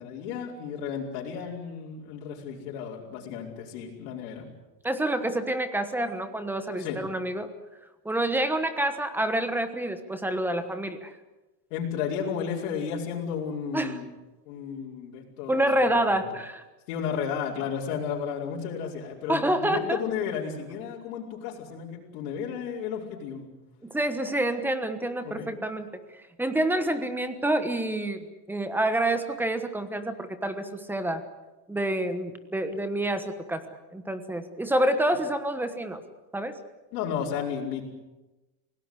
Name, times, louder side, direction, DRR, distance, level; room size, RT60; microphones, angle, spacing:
voice 1, 0.0-4.4 6.8-7.0 11.7-14.1 14.5-16.3 16.9-23.5 25.2-25.5 36.9-37.8, left 7 dB, 70° left, -4 dB, 5.2 m, -33 dB
voice 2, 4.8-7.5 8.0-11.1 13.7-14.0 15.5-16.6 19.3-20.0 23.8-25.9 26.4-31.2 31.7-33.6 33.9-36.0 36.3-36.6, right 1 dB, 5° right, 10 dB, 1.2 m, -27 dB
27.5 x 18.0 x 8.1 m, 1.1 s
cardioid pair, 165°, 46 cm